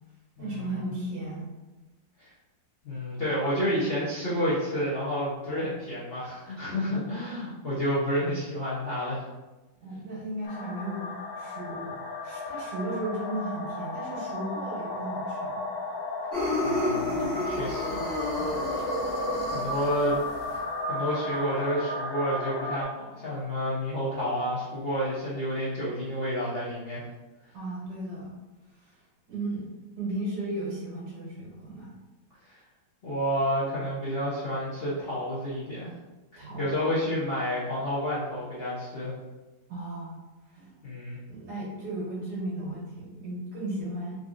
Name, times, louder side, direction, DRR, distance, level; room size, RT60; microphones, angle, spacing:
voice 1, 0.4-1.5 9.8-12.0 12.2-15.6 17.1-17.6 18.4-18.6 27.5-28.4 28.8-29.0 29.3-29.7 30.0-31.9 36.4-36.7 39.7-40.2 40.5-40.7 41.3-44.2, right 1 dB, 75° right, -7 dB, 1.9 m, -35 dB
voice 2, 2.8-9.2 16.6-17.2 17.5-18.0 19.5-20.2 20.9-27.0 33.0-35.9 36.3-39.1 40.8-41.2, equal, 50° left, -10 dB, 0.7 m, -30 dB
sound 1, 10.4-22.8, left 2 dB, 90° left, 1.3 m, -34 dB
sound 2, 16.3-20.6, left 1 dB, 10° left, 1.1 m, -30 dB
3.9 x 2.7 x 2.5 m, 1.1 s
omnidirectional pair, 1.9 m